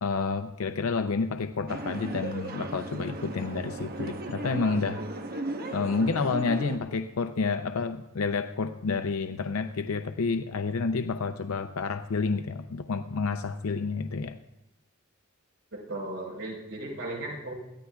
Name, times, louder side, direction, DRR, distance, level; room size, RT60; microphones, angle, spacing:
voice 1, 0.0-5.0 5.7-14.4, left 4 dB, 90° left, 8 dB, 0.6 m, -29 dB
sound 1, 1.7-6.8, right 2 dB, 45° right, 1.1 m, -36 dB
voice 2, 15.7-17.5, right 2 dB, 75° right, -2 dB, 4.6 m, -36 dB
21.0 x 15.0 x 2.3 m, 0.93 s
head